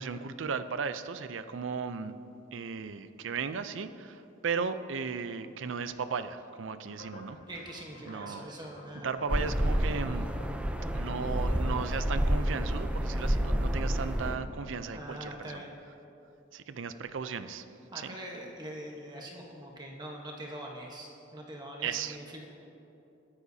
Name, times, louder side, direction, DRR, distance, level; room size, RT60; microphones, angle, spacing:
voice 1, 0.0-2.1 2.5-7.4 8.0-8.5 9.0-10.3 10.9-15.6 16.5-17.7 17.9-18.1 21.8-22.2, right 5 dB, 70° right, 12 dB, 0.5 m, -36 dB
sound 1, 6.8-14.8, left 1 dB, 80° left, 2.4 m, -50 dB
voice 2, 7.5-9.1 14.9-15.7 17.9-22.5, right 1 dB, 20° right, -1 dB, 1.1 m, -43 dB
sound 2, 9.3-14.3, equal, 5° right, 0.5 m, -29 dB
22.0 x 9.8 x 2.8 m, 2.9 s
head